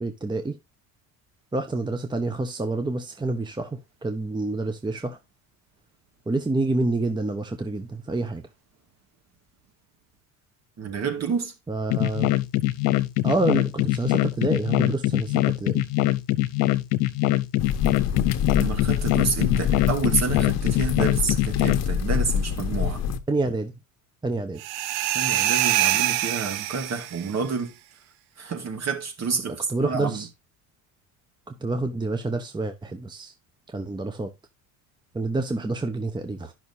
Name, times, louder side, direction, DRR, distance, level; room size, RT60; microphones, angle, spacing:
voice 1, 0.0-0.6 1.5-5.2 6.3-8.5 11.7-12.3 13.2-15.8 23.3-23.7 24.2-24.6 29.7-30.3 31.5-33.3 33.7-34.3 35.1-36.5, right 2 dB, 10° right, 0.9 m, -28 dB
voice 2, 10.8-11.5 18.6-23.0 25.1-27.7 28.4-30.3, right 5 dB, 40° right, 2.3 m, -29 dB
sound 1, 11.9-21.8, left 17 dB, 75° left, 0.9 m, -23 dB
sound 2, 17.6-23.2, left 7 dB, 45° left, 1.1 m, -26 dB
sound 3, 24.6-27.3, right 13 dB, 75° right, 0.8 m, -24 dB
11.0 x 6.0 x 2.7 m
supercardioid pair, 90°, 39 cm